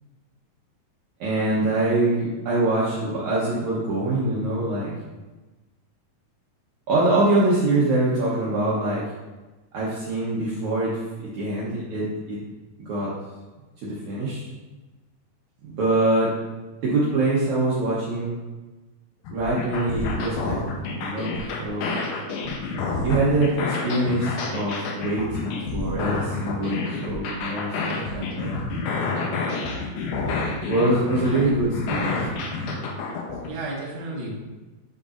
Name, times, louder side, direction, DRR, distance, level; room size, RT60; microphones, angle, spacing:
voice 1, 1.2-4.9 6.9-9.0 9.7-11.0 11.3-12.4 12.8-13.1 13.8-14.5 15.7-16.3 16.8-18.4 19.3-22.0 23.0-28.6 30.7-32.3, right 2 dB, 65° right, -7 dB, 2.1 m, -24 dB
sound 1, 19.3-33.5, left 3 dB, 90° left, 2.7 m, -29 dB
voice 2, 27.8-28.3 31.1-31.5 33.5-34.4, right 1 dB, 45° right, -6 dB, 1.8 m, -35 dB
11.0 x 3.7 x 2.5 m, 1.2 s
omnidirectional pair, 4.2 m